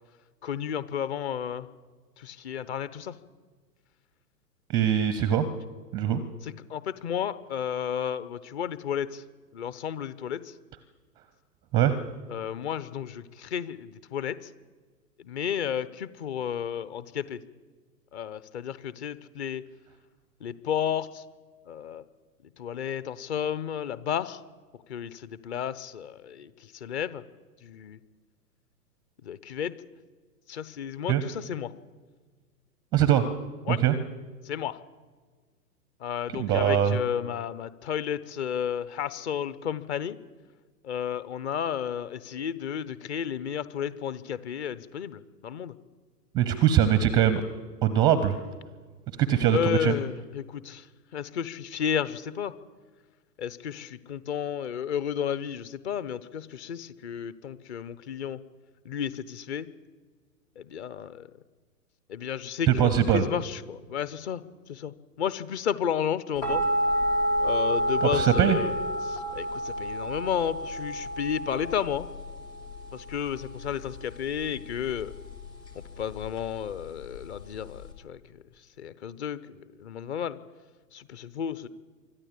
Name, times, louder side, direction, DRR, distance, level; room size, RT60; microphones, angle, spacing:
voice 1, 0.4-1.7 2.2-3.1 6.4-9.2 9.5-10.5 12.3-14.4 15.2-17.4 18.1-19.6 20.4-21.2 21.7-22.0 22.6-24.4 24.9-27.2 27.6-28.0 29.2-29.7 30.5-31.7 33.7-33.8 34.4-34.8 36.0-40.2 40.8-45.7 49.5-50.9 51.1-52.5 53.4-58.4 58.8-59.7 60.6-61.3 62.1-64.4 64.7-66.7 67.4-68.7 69.0-72.1 72.9-75.1 75.7-78.4 78.8-80.4 80.9-81.7, left 8 dB, 40° left, 16 dB, 1.1 m, -32 dB
voice 2, 4.7-5.5 5.9-6.2 11.7-12.0 31.1-31.2 32.9-33.3 33.7-33.9 36.3-37.0 46.3-47.4 47.8-48.4 49.2-49.9 62.7-63.3 68.0-68.6, right 10 dB, 10° right, 13 dB, 0.5 m, -22 dB
sound 1, 66.4-77.9, equal, 80° left, 4.6 m, -30 dB
24.5 x 13.5 x 8.4 m, 1.5 s
figure-of-eight pair, 110°, 49 cm